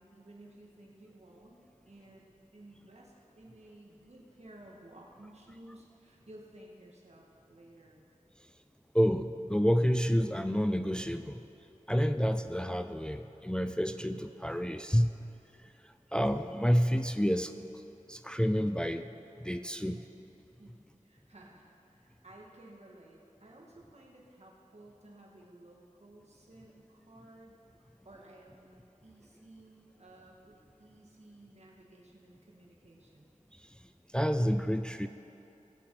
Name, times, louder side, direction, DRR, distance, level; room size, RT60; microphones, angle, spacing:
voice 1, 0.0-1.6 1.9-8.0 20.6-33.3, right 1 dB, 55° right, -2 dB, 2.2 m, -55 dB
voice 2, 8.9-11.4 11.9-15.1 15.6-17.5 18.1-19.1 19.4-20.0 33.5-33.7 34.1-35.1, equal, 5° left, 8 dB, 0.4 m, -29 dB
21.0 x 7.1 x 5.0 m, 2.8 s
wide cardioid pair, 55°, 13 cm